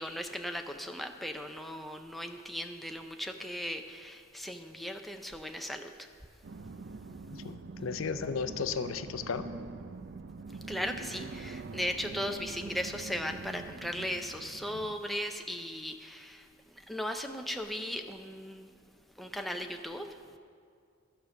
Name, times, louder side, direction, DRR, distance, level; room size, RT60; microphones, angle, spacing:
voice 1, 0.0-6.1 10.7-18.7 19.1-20.4, equal, ahead, 4 dB, 0.5 m, -37 dB
sound 1, 6.4-15.0, right 3 dB, 55° right, 0.5 m, -44 dB
voice 2, 7.3-9.5, left 5 dB, 80° left, 12 dB, 0.5 m, -35 dB
12.5 x 5.1 x 7.0 m, 2.3 s
head